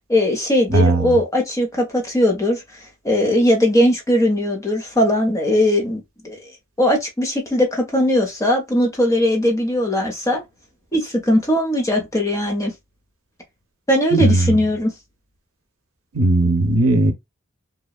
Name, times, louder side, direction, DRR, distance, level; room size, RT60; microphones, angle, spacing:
voice 1, 0.1-2.6 3.0-6.5 6.8-10.4 10.9-12.7 13.9-14.9, left 1 dB, 15° left, 0.8 m, -19 dB
voice 2, 0.7-1.1 14.1-14.6 16.1-17.1, right 2 dB, 90° right, 0.6 m, -17 dB
2.9 x 2.2 x 2.2 m
head